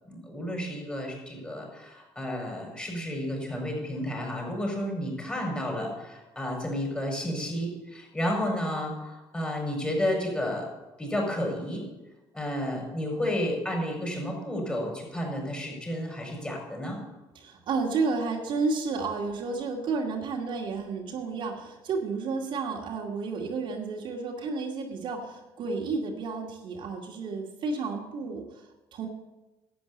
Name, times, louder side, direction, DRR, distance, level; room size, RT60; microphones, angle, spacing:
voice 1, 0.0-10.7 11.0-11.8 12.3-17.0, left 1 dB, 10° left, -1 dB, 5.5 m, -31 dB
voice 2, 17.3-29.1, right 4 dB, 60° right, 0 dB, 2.2 m, -31 dB
11.5 x 8.5 x 7.9 m, 1.1 s
cardioid pair, 120°, 9 cm